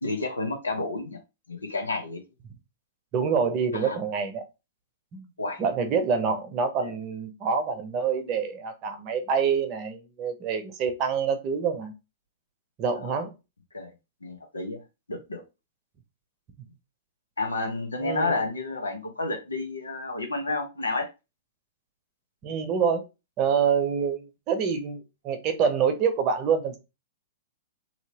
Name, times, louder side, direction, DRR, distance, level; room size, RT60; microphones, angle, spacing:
voice 1, 0.0-1.2 1.5-2.2 3.7-4.0 5.4-5.6 6.8-6.9 12.9-13.1 13.7-13.9 14.2-14.8 15.1-15.4 17.4-21.1, left 2 dB, 85° left, 5 dB, 0.8 m, -30 dB
voice 2, 3.1-4.4 5.1-5.3 5.6-11.9 12.8-13.3 18.0-18.3 22.4-23.1 23.4-26.8, right 6 dB, 35° right, 7 dB, 0.7 m, -26 dB
2.9 x 2.8 x 2.8 m, 0.26 s
figure-of-eight pair, 105°, 0 cm